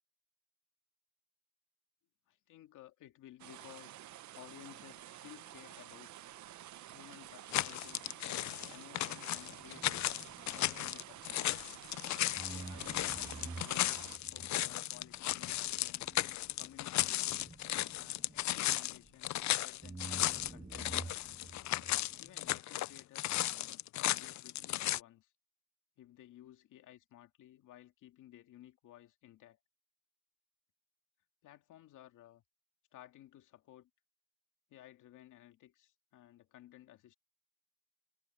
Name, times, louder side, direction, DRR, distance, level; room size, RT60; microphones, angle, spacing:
voice 1, 2.3-4.0 4.3-6.1 6.9-8.0 8.7-10.2 10.5-11.7 12.5-16.0 16.6-17.5 17.9-21.4 22.2-25.3 26.0-29.6 31.4-32.4 32.9-33.9 34.7-37.2, left 13 dB, 85° left, 2.6 m, -57 dB
sound 1, 3.4-14.2, right 12 dB, 70° right, 1.0 m, -51 dB
sound 2, 7.5-25.0, left 15 dB, 65° left, 0.6 m, -35 dB
sound 3, 9.4-12.0 12.3-19.4 19.8-22.6, right 3 dB, 10° right, 0.5 m, -51 dB
cardioid pair, 90°, 30 cm